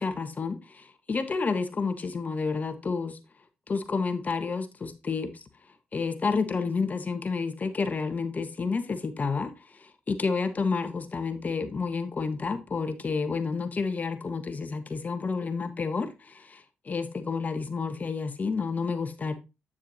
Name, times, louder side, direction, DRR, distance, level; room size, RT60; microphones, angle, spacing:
voice 1, 0.0-3.2 3.7-5.5 5.9-19.3, left 4 dB, 40° left, 1.3 m, -30 dB
8.8 x 7.2 x 2.8 m
supercardioid pair, 55°, 4 cm